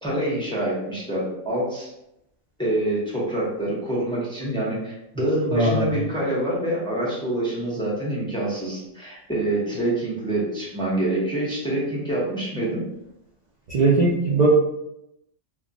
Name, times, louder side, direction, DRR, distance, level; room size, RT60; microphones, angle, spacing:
voice 1, 0.0-1.9 2.6-12.8, right 1 dB, 5° left, -7 dB, 0.6 m, -26 dB
voice 2, 5.5-5.9 13.7-14.5, right 2 dB, 60° right, -5 dB, 0.4 m, -19 dB
2.2 x 2.2 x 3.8 m, 0.85 s
omnidirectional pair, 1.3 m